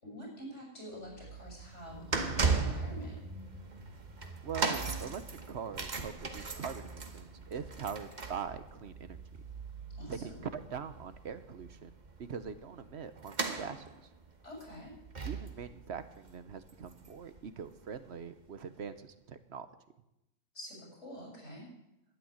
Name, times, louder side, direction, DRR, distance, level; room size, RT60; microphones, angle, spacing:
voice 1, 0.0-3.2 10.0-10.4 14.4-15.0 20.5-21.7, equal, 70° left, -2 dB, 7.0 m, -46 dB
sound 1, 1.0-17.4 17.6-17.9 18.7-18.8, right 4 dB, 40° right, 1.3 m, -38 dB
voice 2, 4.4-9.2 10.1-13.9 15.2-19.7, right 6 dB, 60° right, 11 dB, 1.1 m, -42 dB
12.0 x 9.1 x 9.6 m, 0.89 s
omnidirectional pair, 1.3 m